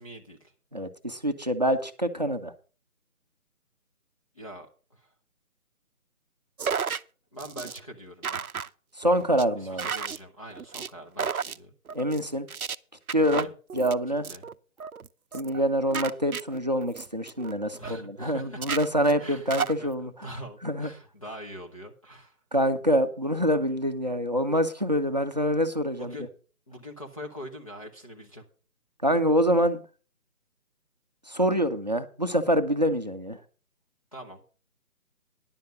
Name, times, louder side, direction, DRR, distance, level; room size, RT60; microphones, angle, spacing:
voice 1, 0.0-0.5 4.3-5.1 7.3-8.5 9.5-11.7 13.1-13.5 14.1-14.5 17.8-18.6 19.2-19.5 19.8-22.4 26.0-26.3 26.7-28.4 34.1-34.4, equal, 25° left, 0 dB, 1.0 m, -43 dB
voice 2, 0.7-2.5 9.0-9.9 11.9-12.5 13.1-13.5 13.7-14.3 15.3-20.1 20.6-20.9 22.5-26.1 29.0-29.8 31.3-33.4, equal, 30° right, 7 dB, 0.7 m, -25 dB
sound 1, 6.6-7.0 7.4-7.8 8.2-8.7 9.0-9.4 9.8-10.2 10.5-10.9 11.2-11.6 11.9-12.2 12.5-12.7 13.1-13.9 14.2-14.5 14.8-15.1 15.3-15.6 15.9-17.9 18.2-18.3 18.6-19.7, right 6 dB, 70° right, 0.6 m, -33 dB
10.5 x 7.2 x 6.1 m, 0.37 s
figure-of-eight pair, 155°, 45 cm